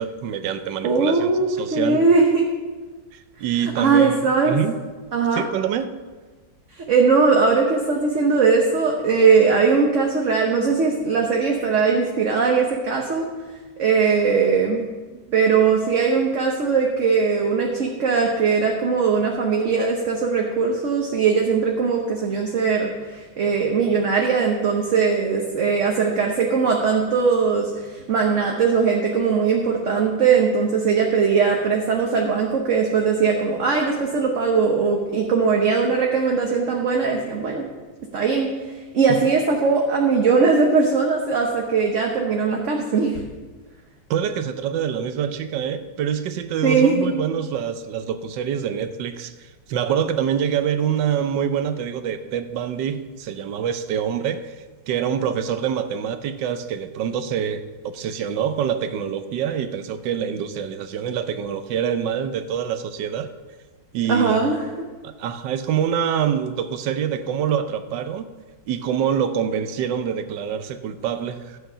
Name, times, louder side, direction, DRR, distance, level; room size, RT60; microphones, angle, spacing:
voice 1, 0.0-1.3 1.6-2.0 3.4-4.1 4.5-4.8 5.3-5.9 15.1-15.2 44.1-49.3 49.7-54.5 54.9-63.3 63.9-64.4 65.0-68.3 68.7-71.6, right 8 dB, 80° right, 10 dB, 1.4 m, -25 dB
voice 2, 0.8-2.5 3.6-4.6 5.1-5.4 6.8-13.3 13.8-14.8 15.3-37.7 38.1-38.5 38.9-43.2 46.6-47.1 64.1-64.6, right 5 dB, 50° right, 1 dB, 1.2 m, -20 dB
11.5 x 8.1 x 5.5 m, 1.3 s
omnidirectional pair, 1.9 m